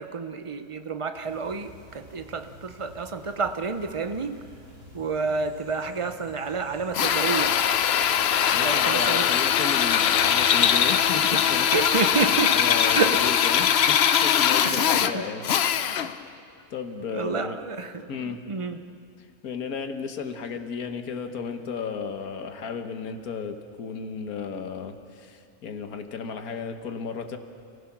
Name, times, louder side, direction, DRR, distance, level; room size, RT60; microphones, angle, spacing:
voice 1, 0.0-4.4 4.9-7.6 8.6-9.3 10.5-10.7 11.2-11.4 11.7-12.5 12.9-13.2 14.6-15.2 17.1-18.8, right 4 dB, 30° right, 9 dB, 0.6 m, -29 dB
sound 1, 1.1-13.9, equal, 75° right, 7.1 m, -49 dB
Drill, 6.9-16.2, left 9 dB, 60° left, 0.7 m, -21 dB
voice 2, 8.5-11.7 12.5-15.4 15.8-16.1 16.7-17.6 18.1-18.4 19.2-27.4, left 6 dB, 85° left, 7 dB, 1.7 m, -34 dB
29.5 x 15.5 x 6.0 m, 2.3 s
omnidirectional pair, 1.5 m